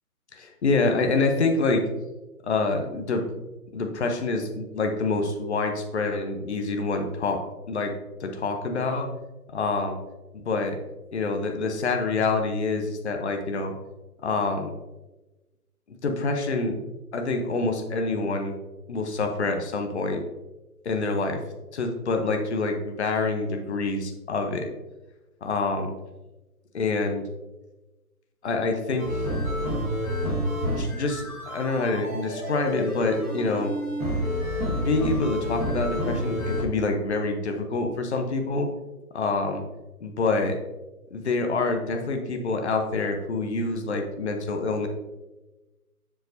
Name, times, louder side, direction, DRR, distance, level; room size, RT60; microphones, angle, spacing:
voice 1, 0.3-1.8 2.4-3.2 3.7-7.4 7.7-7.9 8.2-9.1 9.5-10.0 10.3-10.8 11.1-13.7 14.2-14.7 15.9-16.8 17.1-18.6 18.9-20.2 20.8-21.4 21.7-24.7 25.4-25.9 26.7-27.3 28.4-29.1 30.6-33.7 34.7-38.7 39.1-39.6 40.0-40.5 41.1-44.9, left 3 dB, 45° left, 4 dB, 1.0 m, -26 dB
sound 1, 29.0-36.6, equal, 10° right, 1.0 m, -29 dB
7.4 x 7.1 x 2.7 m, 1.1 s
figure-of-eight pair, 145°, 46 cm